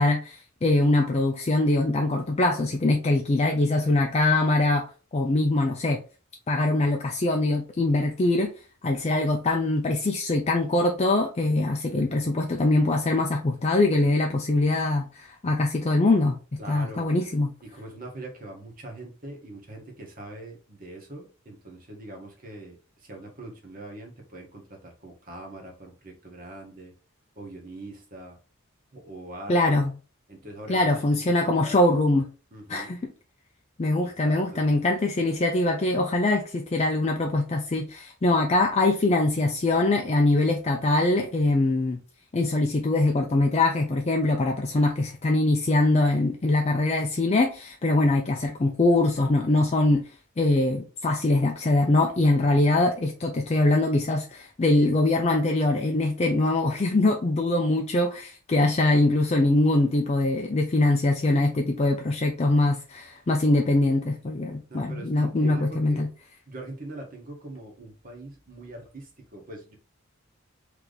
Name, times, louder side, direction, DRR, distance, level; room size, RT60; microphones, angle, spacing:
voice 1, 0.0-6.0 6.5-8.5 8.8-16.4 16.7-17.5 29.5-29.9 30.7-32.3 32.7-33.0 33.8-42.0 42.3-50.0 50.4-66.1, left 2 dB, 30° left, 0.4 m, -23 dB
voice 2, 16.6-17.1 17.6-26.9 27.3-28.4 28.9-29.9 30.3-31.9 32.5-32.9 34.0-34.6 64.7-66.1 66.5-69.7, right 2 dB, 40° right, 1.3 m, -42 dB
3.3 x 3.0 x 3.9 m
head